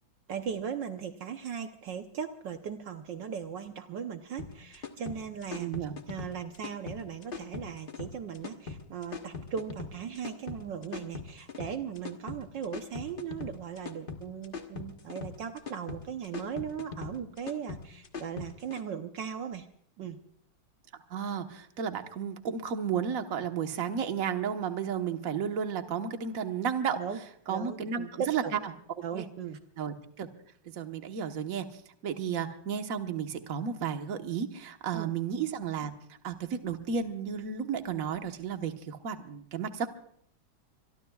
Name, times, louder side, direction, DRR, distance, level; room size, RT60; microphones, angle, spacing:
voice 1, 0.3-5.7 6.1-19.7 20.0-20.2 27.0-27.2 27.5-28.5 29.0-29.6 34.9-35.1, right 7 dB, 65° right, 6 dB, 1.6 m, -38 dB
sound 1, 4.4-18.8, left 5 dB, 30° left, 1.2 m, -41 dB
voice 2, 5.6-6.0 21.1-27.0 27.5-28.6 29.1-29.2 29.8-30.3 30.6-35.9 36.2-39.9, right 7 dB, 45° right, 6 dB, 1.5 m, -33 dB
26.0 x 23.0 x 2.4 m, 0.67 s
omnidirectional pair, 2.2 m